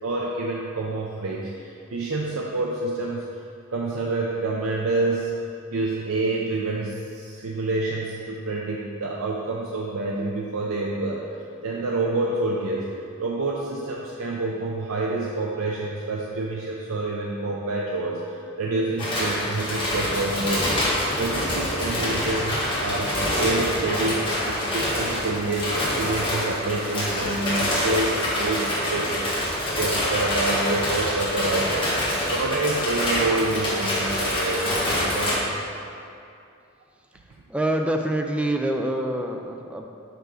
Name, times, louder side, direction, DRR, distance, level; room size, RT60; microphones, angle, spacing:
voice 1, 0.0-3.4 3.7-5.3 5.7-11.3 11.6-12.9 13.2-20.7 21.2-29.4 29.7-35.4, right 2 dB, 80° right, -3 dB, 0.6 m, -28 dB
sound 1, 19.0-35.3, left 1 dB, 25° left, 1.5 m, -26 dB
voice 2, 37.5-39.9, right 1 dB, 5° right, 3 dB, 0.3 m, -25 dB
6.0 x 5.6 x 3.8 m, 2.5 s
head